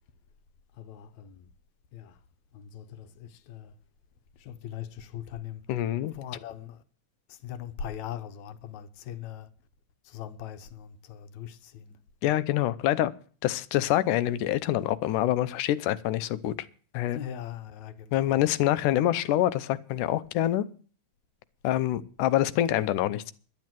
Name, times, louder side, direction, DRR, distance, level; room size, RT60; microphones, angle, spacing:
voice 1, 0.8-1.5 1.9-2.2 2.5-3.8 4.4-5.7 6.1-6.8 7.3-9.5 10.0-12.0 17.1-18.4, left 9 dB, 70° left, 2.3 m, -41 dB
voice 2, 5.7-6.1 12.2-13.1 13.4-16.6 16.9-17.2 18.1-20.7 21.6-23.3, left 13 dB, 90° left, 2.3 m, -26 dB
11.0 x 11.0 x 7.5 m
omnidirectional pair, 3.6 m